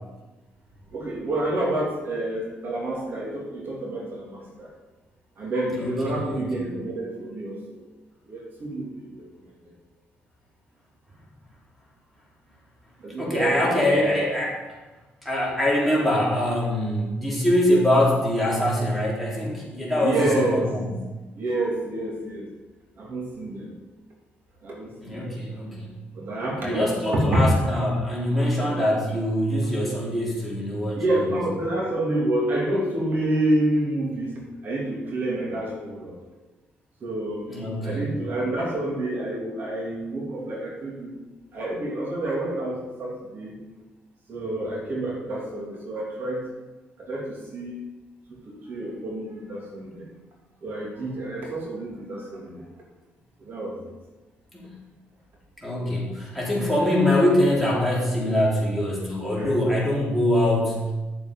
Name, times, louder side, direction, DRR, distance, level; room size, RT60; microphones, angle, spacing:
voice 1, 0.9-4.7 5.4-7.8 8.3-9.3 13.0-14.0 20.0-20.7 21.4-22.5 23.0-23.7 24.6-25.4 26.1-27.5 31.0-36.2 37.0-37.4 37.8-41.1 41.5-43.6 44.3-46.5 47.1-47.8 48.3-50.1 50.6-52.6 53.5-53.8 55.8-56.1 59.4-59.5, right 1 dB, 55° right, -2 dB, 2.8 m, -28 dB
voice 2, 6.3-6.8 13.2-14.6 15.2-20.9 25.0-25.9 26.6-31.4 37.5-38.1 54.5-54.7 55.6-60.9, left 1 dB, ahead, -5 dB, 3.7 m, -23 dB
10.5 x 7.2 x 5.4 m, 1.1 s
cardioid pair, 105°, 4 cm